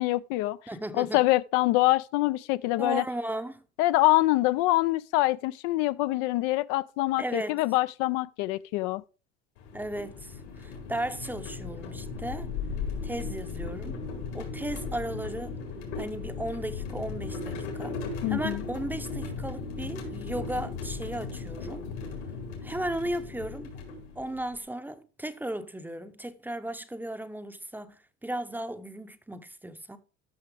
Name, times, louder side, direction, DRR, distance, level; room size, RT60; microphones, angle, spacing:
voice 1, 0.0-0.6 0.9-3.0 3.8-9.0 18.2-18.6, left 18 dB, 70° left, 0.5 m, -25 dB
voice 2, 0.7-1.2 2.8-3.6 7.2-7.6 9.7-12.5 13.0-14.0 14.3-15.6 16.0-18.0 18.3-21.9 22.6-23.7 24.2-30.0, right 1 dB, 5° right, 0.6 m, -35 dB
sound 1, 9.6-24.6, left 4 dB, 90° left, 4.5 m, -37 dB
13.0 x 6.0 x 3.3 m
supercardioid pair, 110°, 33 cm